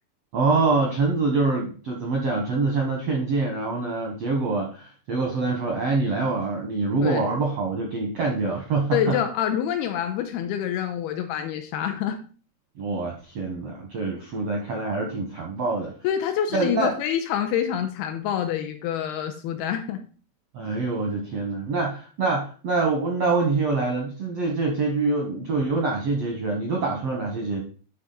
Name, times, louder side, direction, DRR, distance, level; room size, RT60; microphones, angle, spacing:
voice 1, 0.3-9.2 12.8-15.9 16.5-16.9 20.5-27.6, right 3 dB, 75° right, 1 dB, 1.4 m, -25 dB
voice 2, 8.9-12.2 16.0-20.0, left 9 dB, 85° left, 6 dB, 2.4 m, -26 dB
11.0 x 4.0 x 4.0 m, 0.38 s
omnidirectional pair, 4.7 m